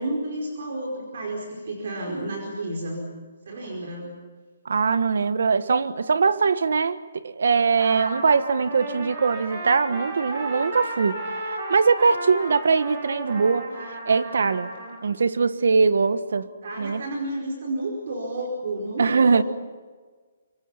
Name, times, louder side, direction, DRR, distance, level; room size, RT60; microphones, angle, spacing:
voice 1, 0.0-3.1 3.5-4.2 16.6-19.4, right 1 dB, 55° right, 0 dB, 4.9 m, -31 dB
voice 2, 4.6-11.2 11.7-13.7 14.1-14.7 15.0-16.5 16.8-17.1 19.0-19.4, right 5 dB, 70° right, 13 dB, 1.3 m, -21 dB
Trumpet, 7.8-15.0, right 2 dB, 35° right, 6.6 m, -34 dB
27.0 x 24.0 x 5.8 m, 1.5 s
hypercardioid pair, 175°, 0 cm